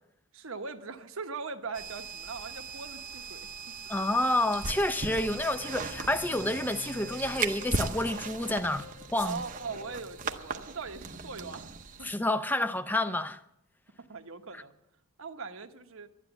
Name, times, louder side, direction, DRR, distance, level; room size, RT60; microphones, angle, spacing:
voice 1, 0.3-3.4 3.8-4.0 9.2-12.1 14.1-14.7 15.2-16.1, right 4 dB, 70° right, 1.1 m, -40 dB
sound 1, 1.7-12.1, right 4 dB, 35° right, 0.8 m, -38 dB
voice 2, 3.9-9.4 12.0-13.4, left 1 dB, 10° left, 0.5 m, -29 dB
sound 2, 4.9-10.3, left 6 dB, 55° left, 1.1 m, -49 dB
12.0 x 10.0 x 8.0 m
head